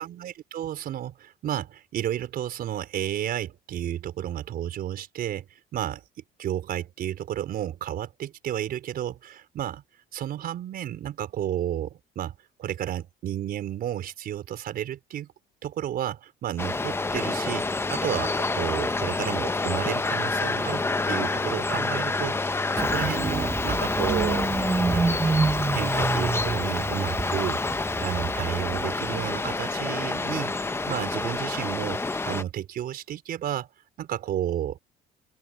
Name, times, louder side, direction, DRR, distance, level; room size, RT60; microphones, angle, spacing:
voice 1, 0.0-5.5 5.7-6.0 6.4-9.8 10.1-12.3 12.6-15.3 15.6-24.5 24.9-33.7 34.0-34.8, right 11 dB, 65° right, 4.6 m, -32 dB
sound 1, 16.6-32.4, left 3 dB, 15° left, 0.9 m, -28 dB
Engine starting, 22.8-29.2, right 4 dB, 15° right, 0.5 m, -28 dB
open air
cardioid pair, 110°, 17 cm